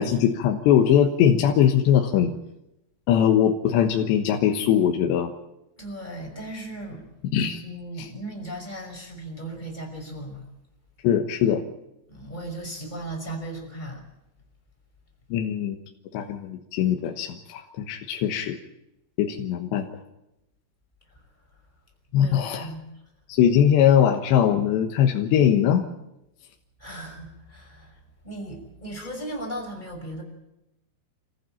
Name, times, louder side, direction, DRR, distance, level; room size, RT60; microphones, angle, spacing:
voice 1, 0.0-2.3 3.1-5.3 7.3-7.6 8.0-8.1 11.0-11.6 15.3-15.8 16.1-18.6 19.2-19.9 22.1-22.7 23.3-25.8, left 9 dB, 75° left, 3 dB, 3.5 m, -21 dB
voice 2, 5.8-7.1 7.6-10.5 12.1-14.0 22.2-22.8 26.8-27.9 28.2-30.2, right 1 dB, 10° left, 2 dB, 5.3 m, -36 dB
27.5 x 15.5 x 8.9 m, 0.91 s
omnidirectional pair, 5.2 m